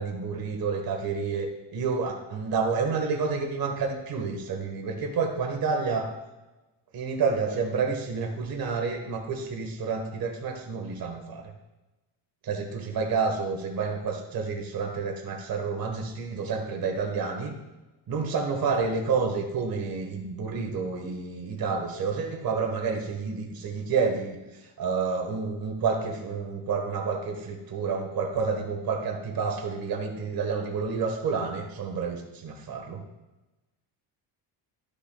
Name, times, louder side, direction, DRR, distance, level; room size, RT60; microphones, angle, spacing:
voice 1, 0.0-6.1 6.9-11.5 12.4-17.6 18.1-33.0, right 5 dB, 50° right, 3 dB, 1.4 m, -29 dB
12.0 x 6.8 x 2.3 m, 1.1 s
cardioid pair, 90°, 45 cm